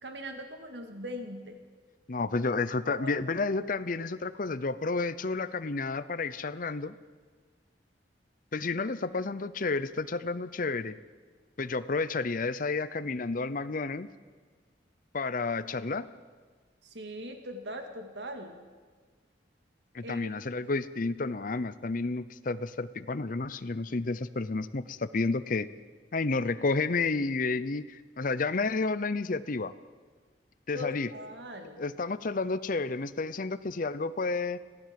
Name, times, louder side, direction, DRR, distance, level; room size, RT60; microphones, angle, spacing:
voice 1, 0.0-1.6 2.9-3.1 16.8-18.6 20.0-20.3 30.7-31.8, equal, 80° right, 5 dB, 2.2 m, -40 dB
voice 2, 2.1-6.9 8.5-11.0 11.6-14.1 15.1-16.1 19.9-25.7 26.1-29.7 30.7-31.1 31.8-34.6, left 3 dB, 50° left, 13 dB, 0.7 m, -31 dB
25.5 x 16.0 x 7.7 m, 1.5 s
head